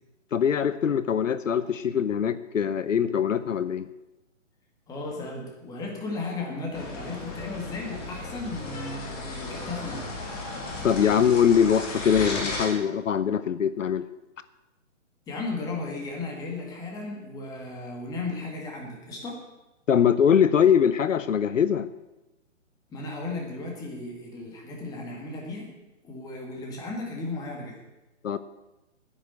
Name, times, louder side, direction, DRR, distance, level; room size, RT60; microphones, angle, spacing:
voice 1, 0.3-3.8 10.8-14.1 19.9-21.9 28.2-28.4, left 8 dB, 80° left, 14 dB, 0.9 m, -22 dB
voice 2, 4.9-10.1 15.3-19.4 22.9-25.7 26.0-27.8, left 3 dB, 10° left, 0 dB, 2.0 m, -35 dB
sound 1, 6.7-12.7, left 2 dB, 30° left, 3.1 m, -35 dB
10.0 x 10.0 x 8.1 m, 0.99 s
hypercardioid pair, 160°, 38 cm